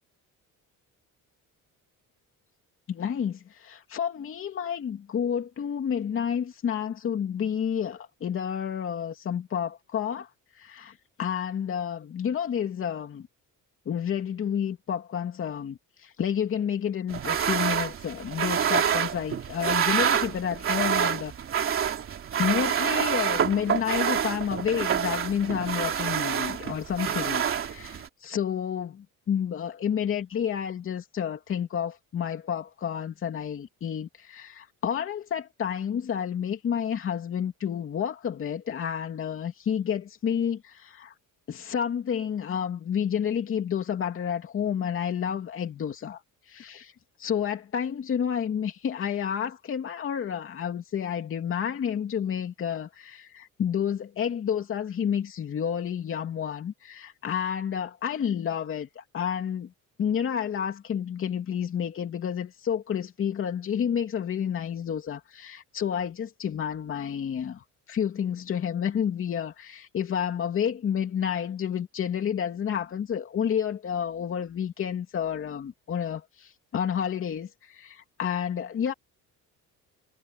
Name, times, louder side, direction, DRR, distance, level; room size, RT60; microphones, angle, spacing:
voice 1, 2.9-10.3 10.5-13.3 13.8-21.3 21.6-21.9 22.4-41.1 41.5-46.9 47.2-59.7 60.0-78.9, left 8 dB, 40° left, 2.9 m, -30 dB
sound 1, 17.1-28.1, right 8 dB, 40° right, 3.1 m, -27 dB
cardioid pair, 160°, 33 cm